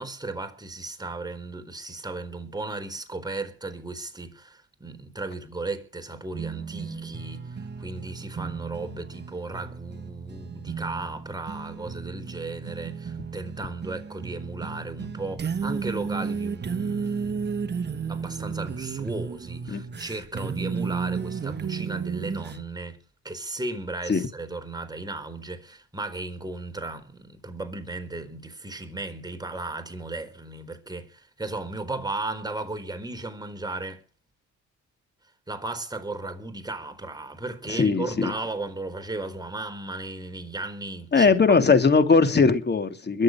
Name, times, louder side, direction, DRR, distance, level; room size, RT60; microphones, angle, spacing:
voice 1, 0.0-23.0 23.2-34.0 35.5-41.6, right 2 dB, 15° right, 4.3 m, -35 dB
sound 1, 6.3-22.6, right 5 dB, 35° right, 1.3 m, -33 dB
voice 2, 37.7-38.3 41.1-43.2, left 4 dB, 35° left, 2.9 m, -20 dB
22.5 x 7.7 x 7.6 m
cardioid pair, 90°, 30 cm